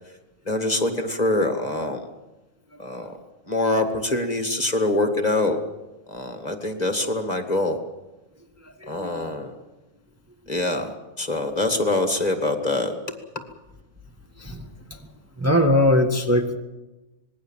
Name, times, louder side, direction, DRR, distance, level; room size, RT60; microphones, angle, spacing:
voice 1, 0.5-2.0 2.8-3.1 3.5-5.6 6.1-7.8 8.9-9.5 10.5-12.9, left 2 dB, 30° left, 6 dB, 2.1 m, -24 dB
voice 2, 8.6-9.2 14.4-15.0 15.4-16.6, left 1 dB, 10° right, 2 dB, 1.6 m, -22 dB
26.0 x 20.5 x 7.5 m, 1.1 s
omnidirectional pair, 1.4 m